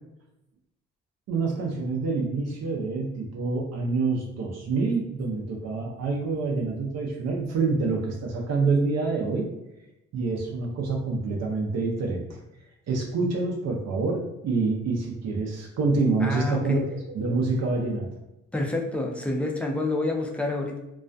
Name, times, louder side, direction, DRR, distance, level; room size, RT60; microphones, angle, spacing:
voice 1, 1.3-9.5 10.1-12.4 12.9-16.8 17.1-18.1, right 3 dB, 60° right, 0 dB, 0.5 m, -27 dB
voice 2, 16.2-16.8 18.5-20.8, left 2 dB, 5° left, 0 dB, 0.3 m, -28 dB
2.3 x 2.1 x 2.5 m, 0.94 s
cardioid pair, 90°, 30 cm